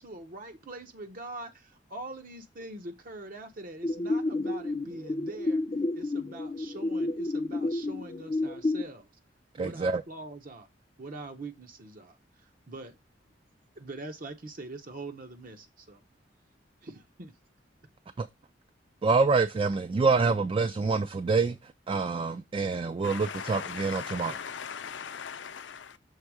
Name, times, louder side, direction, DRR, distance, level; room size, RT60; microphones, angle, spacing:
voice 1, 0.0-5.6 5.9-9.1 9.6-10.7 11.0-13.0 13.8-16.0 16.8-17.3, right 2 dB, 50° right, 0.8 m, -43 dB
sound 1, 3.8-8.8, left 2 dB, 30° left, 0.5 m, -30 dB
voice 2, 9.6-10.0 18.2-18.3 19.0-21.6 21.9-24.4, right 4 dB, 30° right, 0.3 m, -26 dB
voice 3, 23.0-26.0, left 7 dB, 80° left, 0.6 m, -39 dB
6.5 x 3.5 x 4.6 m
head